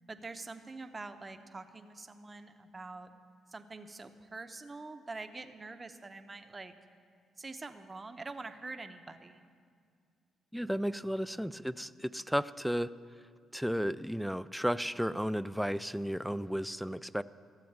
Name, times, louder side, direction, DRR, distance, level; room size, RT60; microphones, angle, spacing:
voice 1, 0.1-3.1 3.5-6.7 7.4-9.4, right 3 dB, 25° right, 8 dB, 0.8 m, -45 dB
voice 2, 10.5-12.9 13.5-17.2, equal, ahead, 15 dB, 0.3 m, -33 dB
14.0 x 7.6 x 8.8 m, 2.1 s
cardioid pair, 90°, 0 cm